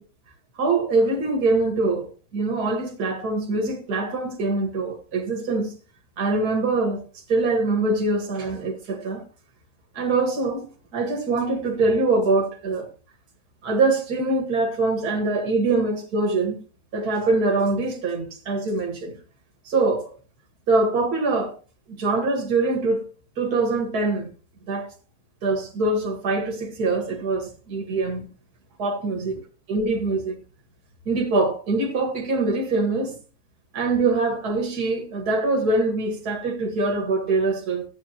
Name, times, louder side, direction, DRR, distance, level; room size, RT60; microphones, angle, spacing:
voice 1, 0.6-5.7 6.2-7.0 7.3-9.2 9.9-10.7 10.9-12.9 13.6-16.6 16.9-19.2 19.7-20.1 20.7-21.5 21.9-23.0 23.4-24.3 24.7-24.9 25.4-28.3 28.8-29.4 29.7-30.4 31.1-33.1 33.7-37.8, right 3 dB, 65° right, 2.4 m, -23 dB
15.0 x 8.9 x 3.0 m
omnidirectional pair, 1.8 m